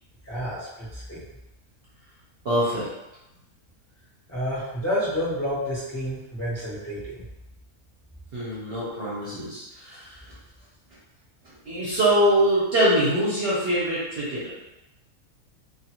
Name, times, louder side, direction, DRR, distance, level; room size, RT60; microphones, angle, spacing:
voice 1, 0.2-1.2 4.3-7.2, equal, 15° left, -10 dB, 0.8 m, -29 dB
voice 2, 2.4-2.9 8.3-10.2 11.7-14.5, right 1 dB, 55° right, -8 dB, 0.8 m, -23 dB
2.5 x 2.4 x 2.9 m, 0.96 s
omnidirectional pair, 1.5 m